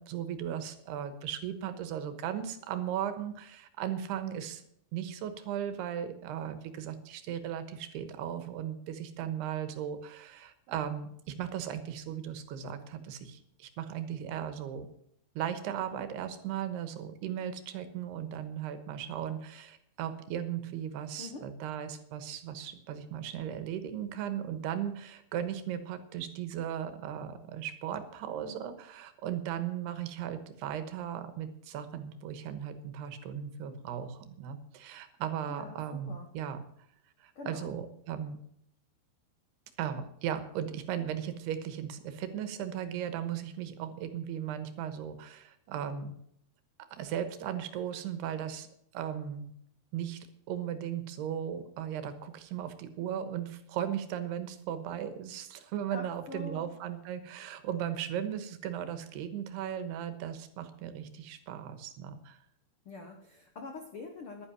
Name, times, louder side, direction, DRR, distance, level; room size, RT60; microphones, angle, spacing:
voice 1, 0.0-4.6 4.9-14.9 15.4-36.6 37.2-38.4 39.8-46.2 46.9-48.7 48.9-49.5 49.9-50.2 50.5-62.4, right 9 dB, 85° right, 10 dB, 3.2 m, -37 dB
voice 2, 21.2-21.5 35.5-36.3 37.3-37.7 55.9-56.7 62.8-64.4, left 3 dB, 75° left, 3 dB, 1.2 m, -44 dB
11.0 x 10.0 x 7.3 m, 0.71 s
omnidirectional pair, 4.6 m